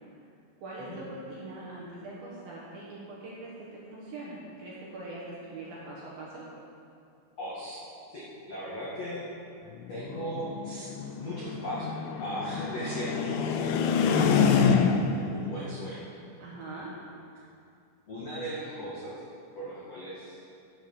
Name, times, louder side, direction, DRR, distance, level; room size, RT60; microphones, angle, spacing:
voice 1, 0.6-6.4 14.1-14.7 16.4-16.9, right 2 dB, 65° right, -6 dB, 2.5 m, -42 dB
voice 2, 7.4-9.2 9.9-15.0 15.3-16.1 16.7-16.9 18.1-19.1 19.5-20.4, equal, 65° left, -8 dB, 1.6 m, -38 dB
sound 1, 9.8-15.3, left 6 dB, 85° left, 3.0 m, -26 dB
13.0 x 6.2 x 7.1 m, 2.5 s
omnidirectional pair, 5.9 m